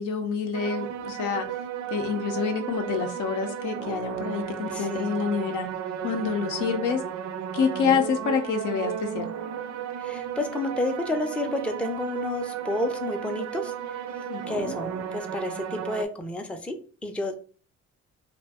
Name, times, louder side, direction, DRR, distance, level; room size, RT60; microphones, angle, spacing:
voice 1, 0.0-1.4 1.9-5.7 6.0-7.0 7.5-9.3 14.3-14.7, left 6 dB, 85° left, 0.6 m, -27 dB
sound 1, 0.5-16.1, right 9 dB, 70° right, 0.5 m, -34 dB
voice 2, 4.7-5.1 10.0-13.7 14.5-17.4, left 2 dB, 5° left, 0.4 m, -30 dB
2.5 x 2.1 x 3.4 m
cardioid pair, 90°, 30 cm